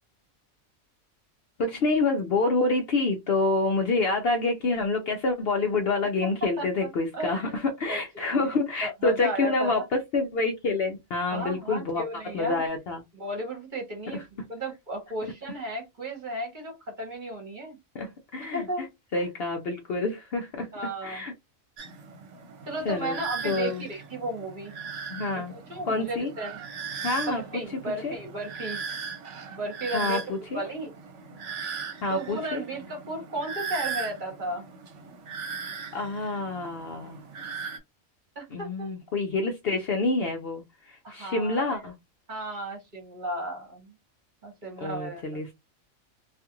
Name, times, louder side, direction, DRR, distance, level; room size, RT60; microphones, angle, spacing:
voice 1, 1.6-7.4 7.8-12.0 12.3-13.0 14.1-14.2 17.9-18.6 19.1-20.7 21.0-21.3 22.9-23.2 23.4-23.8 25.1-25.5 25.9-26.3 27.0-28.1 29.9-30.6 32.0-32.6 35.9-37.2 38.5-41.9 44.8-45.5, left 3 dB, 60° left, 0.6 m, -27 dB
voice 2, 6.4-7.6 7.9-8.0 8.3-8.5 8.8-9.9 11.3-12.6 13.1-14.2 14.5-17.8 18.5-18.8 19.2-19.3 20.7-21.2 22.6-24.7 25.3-26.6 27.3-28.8 29.5-30.2 30.5-30.9 32.1-34.7 38.3-39.0 41.0-41.8 42.3-43.9 44.4-45.5, right 1 dB, 40° right, 1.0 m, -34 dB
sound 1, 21.8-37.8, right 6 dB, 65° right, 1.0 m, -38 dB
2.5 x 2.4 x 2.8 m
omnidirectional pair, 1.4 m